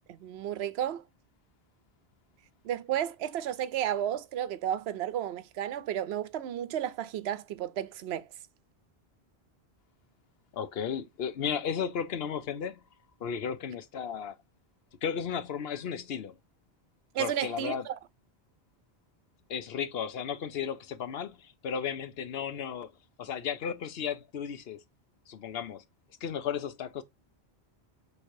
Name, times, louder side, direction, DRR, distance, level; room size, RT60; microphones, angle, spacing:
voice 1, 0.1-1.0 2.6-8.3 17.1-18.0, right 10 dB, 80° right, 0.8 m, -32 dB
voice 2, 10.5-12.8 13.2-14.3 15.0-16.3 17.2-17.9 19.5-22.9 23.2-24.8 25.3-25.8 26.2-27.0, left 7 dB, 70° left, 0.9 m, -34 dB
6.1 x 3.3 x 2.6 m
omnidirectional pair, 1.1 m